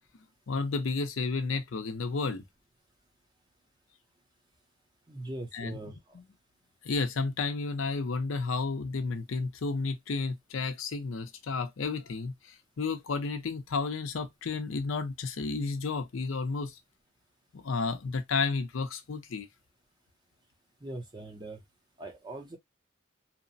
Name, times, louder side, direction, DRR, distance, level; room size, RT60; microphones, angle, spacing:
voice 1, 0.5-2.4 5.5-5.7 6.1-6.2 6.8-16.8 17.5-19.5, left 4 dB, 80° left, 0.5 m, -32 dB
voice 2, 5.1-6.0 20.8-21.6 22.0-22.6, right 2 dB, 20° right, 0.6 m, -41 dB
2.9 x 2.0 x 2.6 m
head